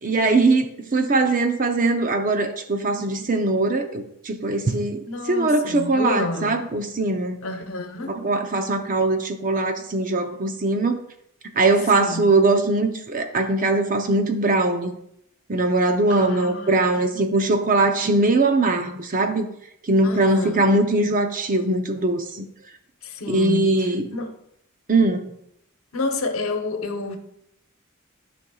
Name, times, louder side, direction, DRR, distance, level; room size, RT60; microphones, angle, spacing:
voice 1, 0.0-7.4 8.1-11.0 11.6-14.9 15.5-19.5 19.9-22.5 23.3-24.1 24.9-25.3, right 2 dB, 40° right, 0.7 m, -21 dB
voice 2, 5.1-6.6 7.4-8.2 11.9-12.2 16.1-17.1 20.0-20.7 23.0-24.4 25.9-27.2, left 2 dB, 80° left, 1.0 m, -30 dB
12.5 x 5.4 x 2.4 m
head